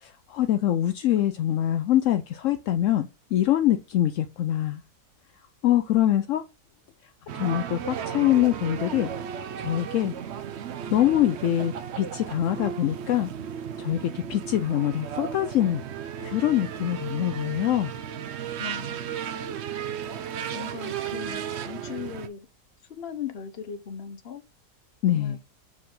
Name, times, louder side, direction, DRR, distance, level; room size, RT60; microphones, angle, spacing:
voice 1, 0.0-4.8 5.6-6.4 7.3-9.1 9.6-10.1 10.9-13.3 13.8-15.8 16.2-17.9 25.0-25.4, left 12 dB, 70° left, 0.7 m, -24 dB
sound 1, 7.3-22.3, right 8 dB, 65° right, 0.6 m, -35 dB
voice 2, 18.6-19.2 20.5-22.5 22.9-24.4 25.1-25.4, left 7 dB, 45° left, 1.0 m, -38 dB
6.0 x 4.9 x 3.7 m
omnidirectional pair, 1.8 m